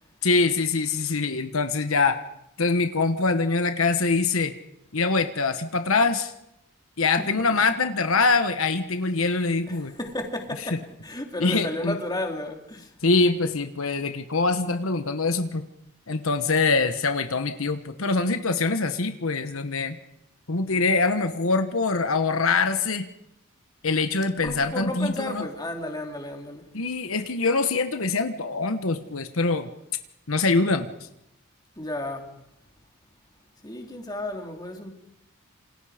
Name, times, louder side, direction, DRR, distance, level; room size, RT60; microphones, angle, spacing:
voice 1, 0.2-2.2 2.6-4.5 4.9-6.3 7.0-9.9 11.4-11.9 13.0-15.7 16.1-19.9 20.5-23.0 23.8-25.4 26.7-29.7 30.3-30.9, left 3 dB, 75° left, 1.2 m, -24 dB
voice 2, 7.2-7.6 9.7-12.9 24.4-26.7 31.8-32.3 33.6-34.9, left 1 dB, 20° left, 3.2 m, -33 dB
27.5 x 27.5 x 5.1 m
head